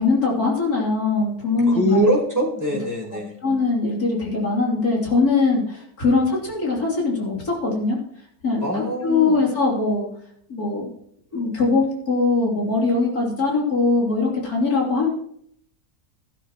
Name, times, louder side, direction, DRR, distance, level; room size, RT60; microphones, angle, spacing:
voice 1, 0.0-2.1 3.1-8.0 8.4-10.1 10.5-10.9 11.3-15.1, left 3 dB, 70° left, -3 dB, 3.8 m, -21 dB
voice 2, 1.7-3.3 8.6-9.4, equal, 10° right, -3 dB, 4.1 m, -22 dB
13.5 x 12.0 x 3.1 m, 0.68 s
omnidirectional pair, 1.7 m